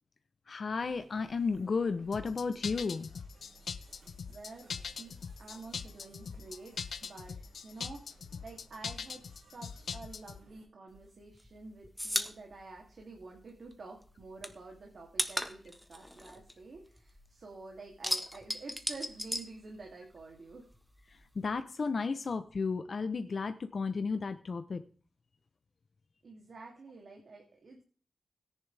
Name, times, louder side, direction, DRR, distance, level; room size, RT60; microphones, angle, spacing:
voice 1, 0.5-3.1 21.1-24.8, left 4 dB, 50° left, 9 dB, 0.8 m, -33 dB
sound 1, 0.8-10.7, right 2 dB, 80° right, 5.9 m, -61 dB
sound 2, 2.1-10.4, left 6 dB, 80° left, 0.8 m, -41 dB
voice 2, 4.3-4.6 5.0-5.1 5.4-7.4 7.6-20.7 26.2-27.8, right 3 dB, 60° right, 1 dB, 2.9 m, -49 dB
sound 3, 10.9-13.7 14.0-17.3 17.6-20.2 20.5-21.6, equal, ahead, 1.3 m, -37 dB
17.5 x 10.5 x 3.4 m, 0.43 s
wide cardioid pair, 125°, 0 cm